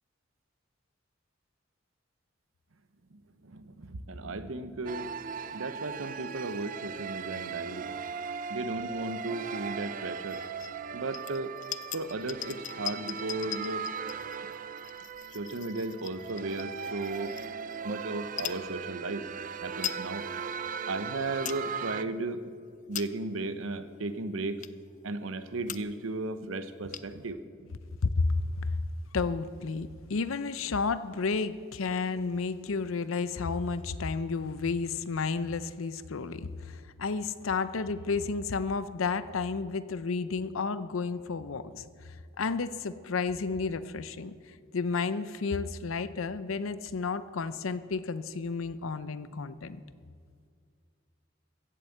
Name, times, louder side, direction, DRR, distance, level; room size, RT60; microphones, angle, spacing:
voice 1, 3.1-5.1 5.5-7.9 8.5-10.4 10.9-11.5 11.9-13.9 15.3-17.3 17.8-19.2 19.6-20.3 20.9-22.4 22.9-24.6 25.0-27.7, right 2 dB, 85° right, 12 dB, 0.8 m, -35 dB
sound 1, 4.9-22.0, right 6 dB, 40° right, 0.4 m, -38 dB
sound 2, 10.2-10.7 11.1-17.8 18.3-18.6 19.3-19.4 19.6-20.0 20.5-20.6 21.1-21.6 22.1-22.3 22.7-23.4 24.0-24.1 24.6-24.9 25.4-25.5 25.6-26.1 26.3-26.4 26.6-27.3, left 11 dB, 40° left, 0.4 m, -41 dB
voice 2, 28.0-28.8 29.1-41.8 42.4-49.8, left 4 dB, 90° left, 14 dB, 0.6 m, -32 dB
15.5 x 7.6 x 7.9 m, 2.2 s
head